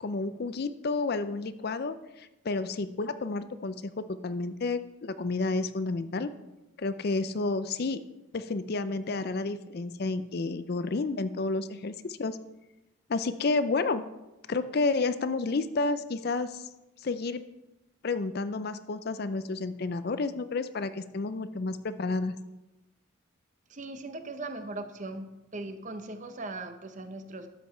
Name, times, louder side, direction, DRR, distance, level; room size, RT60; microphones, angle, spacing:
voice 1, 0.0-6.3 6.8-8.0 8.3-12.4 13.1-14.0 14.5-16.6 17.0-17.4 18.0-22.4, left 3 dB, 50° left, 12 dB, 0.5 m, -30 dB
voice 2, 23.7-27.5, right 2 dB, 35° right, 8 dB, 0.7 m, -39 dB
12.0 x 7.5 x 4.5 m, 0.99 s
head